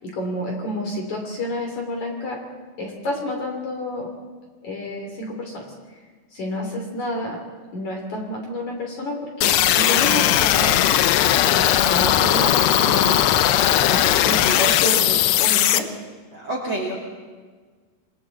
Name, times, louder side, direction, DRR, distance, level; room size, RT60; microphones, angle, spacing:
voice 1, 0.0-2.4 2.8-4.1 4.6-5.7 6.3-7.4 7.7-10.8 11.4-13.1 13.8-15.9, left 1 dB, 40° left, 0 dB, 4.2 m, -29 dB
sound 1, 9.4-15.8, left 12 dB, 75° left, 2.6 m, -18 dB
voice 2, 16.3-17.0, right 1 dB, 30° right, -2 dB, 3.5 m, -28 dB
29.5 x 23.5 x 4.2 m, 1.4 s
omnidirectional pair, 5.4 m